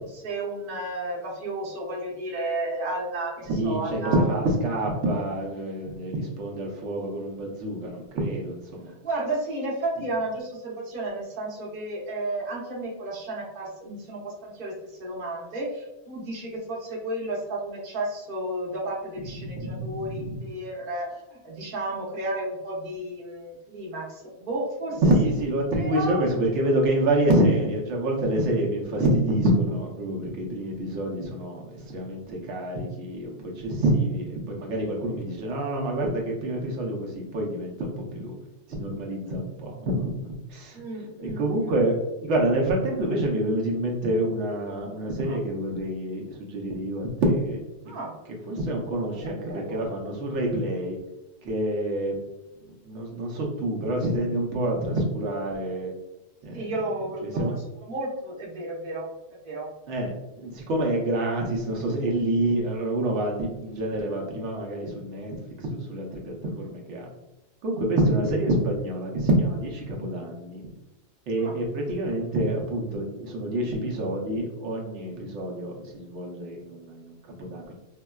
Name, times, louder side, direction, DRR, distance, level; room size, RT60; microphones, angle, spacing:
voice 1, 0.2-4.4 9.0-25.0 25.8-26.3 40.7-41.7 45.3-45.4 47.9-48.2 49.2-49.8 56.5-57.4 57.9-59.1 59.4-59.7 71.4-71.6, right 2 dB, 55° right, -4 dB, 0.9 m, -32 dB
voice 2, 3.5-8.9 19.4-20.4 25.0-38.4 38.7-40.8 41.2-41.9 42.2-47.9 48.5-51.0 51.4-52.2 52.8-55.9 56.4-56.7 57.2-57.5 59.9-67.1 67.6-70.6 71.3-77.7, right 1 dB, 90° right, -1 dB, 1.0 m, -27 dB
3.6 x 2.2 x 2.2 m, 0.99 s
omnidirectional pair, 1.2 m